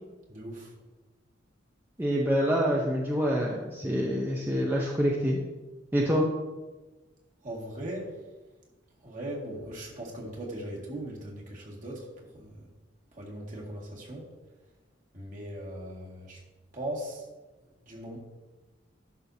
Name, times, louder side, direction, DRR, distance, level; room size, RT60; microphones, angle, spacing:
voice 1, 0.3-0.7 7.4-8.1 9.0-12.1 12.3-12.5 13.1-14.3 15.1-16.4 16.7-17.2 17.8-18.2, right 1 dB, 45° right, -3 dB, 2.0 m, -39 dB
voice 2, 2.0-5.4 5.9-6.3, equal, 10° right, -2 dB, 0.6 m, -26 dB
11.0 x 6.2 x 2.7 m, 1.2 s
head